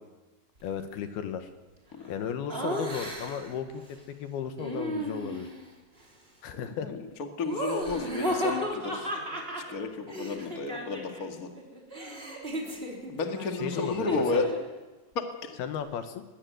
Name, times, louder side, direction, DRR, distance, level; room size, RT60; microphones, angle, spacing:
voice 1, 0.6-1.5 2.1-3.8 4.1-5.5 6.4-6.9 13.6-14.4 15.6-16.2, left 8 dB, 70° left, 8 dB, 2.9 m, -35 dB
Laughter, 2.5-3.5 4.6-5.6 7.4-11.3 11.6-14.7, right 1 dB, 15° right, 3.3 m, -34 dB
voice 2, 6.5-7.1 7.4-9.1 9.5-11.5 13.1-14.4 15.1-15.5, left 3 dB, 45° left, 4 dB, 1.1 m, -32 dB
21.0 x 16.5 x 9.3 m, 1.2 s
omnidirectional pair, 5.0 m